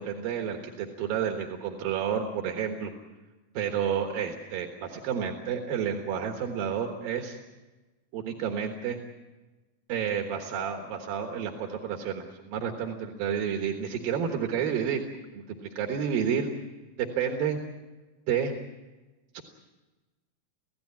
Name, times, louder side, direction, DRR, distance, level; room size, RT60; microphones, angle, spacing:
voice 1, 0.0-2.9 3.5-7.4 8.1-9.0 9.9-15.0 15.3-16.5 17.0-17.6 18.3-18.5 19.3-19.4, right 7 dB, 80° right, 4 dB, 3.2 m, -30 dB
26.5 x 16.5 x 8.6 m, 1.2 s
omnidirectional pair, 4.1 m